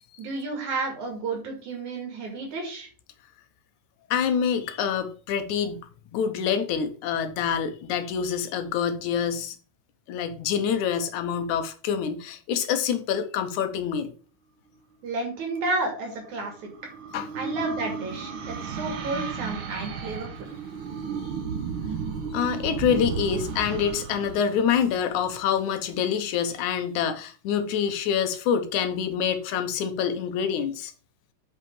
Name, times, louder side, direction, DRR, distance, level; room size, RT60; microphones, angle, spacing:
voice 1, 0.2-2.9 15.0-16.7 17.4-20.6, right 3 dB, 80° right, 3.9 m, -31 dB
voice 2, 4.1-9.6 10.1-14.1 17.1-17.3 22.3-30.9, left 7 dB, 90° left, 2.5 m, -26 dB
sound 1, 16.0-25.6, right 6 dB, 55° right, 1.6 m, -34 dB
7.4 x 5.6 x 5.4 m
omnidirectional pair, 3.3 m